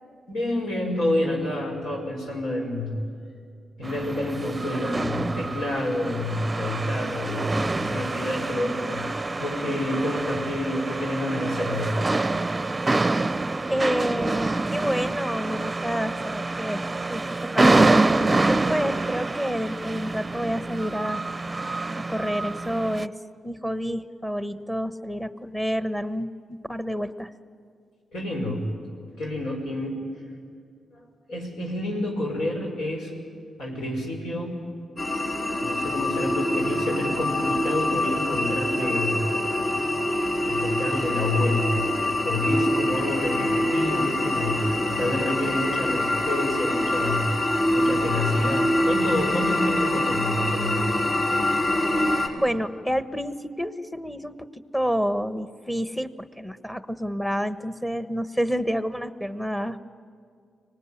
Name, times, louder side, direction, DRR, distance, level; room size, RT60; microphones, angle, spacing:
voice 1, 0.3-3.1 3.8-9.1 9.4-12.0 28.1-28.7 29.2-30.0 31.3-33.1 33.6-34.5 35.6-39.3 40.4-47.3 47.7-50.9, left 1 dB, 85° left, 0 dB, 5.6 m, -28 dB
sound 1, 3.8-23.1, right 2 dB, 25° right, 0.6 m, -26 dB
voice 2, 13.7-21.2 22.0-23.2 23.4-27.3 52.3-59.8, equal, 10° left, 11 dB, 1.2 m, -29 dB
sound 2, 35.0-52.3, left 1 dB, 50° left, 4.0 m, -25 dB
24.5 x 18.5 x 9.9 m, 2.2 s
cardioid pair, 60°, 0 cm